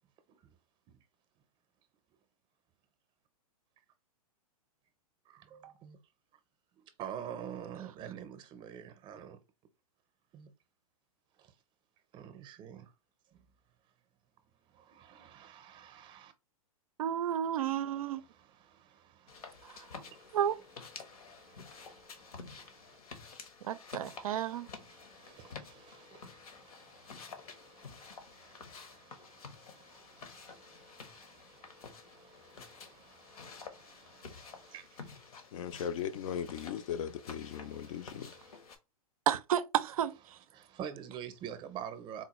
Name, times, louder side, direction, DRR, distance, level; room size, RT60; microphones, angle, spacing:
voice 1, 5.3-6.0 7.0-9.4 10.3-10.5 11.4-11.5 12.1-12.9 13.3-13.5 14.7-16.3 18.0-19.7 20.0-20.4 21.0-23.0 24.0-35.2 37.5-38.6 40.5-42.2, right 9 dB, 25° right, 0.6 m, -49 dB
voice 2, 17.0-18.2 19.6-19.7 20.3-20.6 23.6-24.7 39.3-40.1, right 10 dB, 75° right, 0.4 m, -31 dB
sound 1, 19.3-38.8, left 5 dB, 80° left, 0.9 m, -51 dB
voice 3, 35.5-38.3, left 8 dB, 60° left, 0.4 m, -38 dB
3.8 x 2.2 x 2.9 m
hypercardioid pair, 120°, 19 cm